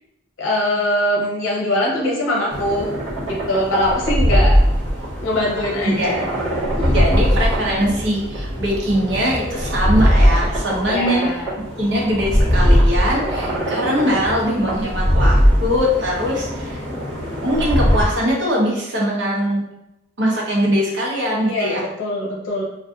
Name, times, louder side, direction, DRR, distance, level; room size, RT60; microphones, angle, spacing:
voice 1, 0.4-2.9 3.2-4.6 5.2-6.3 6.8-6.9 10.8-11.5 21.4-22.6, left 1 dB, 85° left, -3 dB, 0.7 m, -22 dB
sound 1, 2.5-18.0, equal, 25° right, 1.2 m, -20 dB
voice 2, 5.8-6.2 6.9-11.3 11.8-16.8 17.4-19.6 20.2-21.8, equal, 65° right, -3 dB, 0.9 m, -21 dB
2.5 x 2.4 x 3.5 m, 0.89 s
head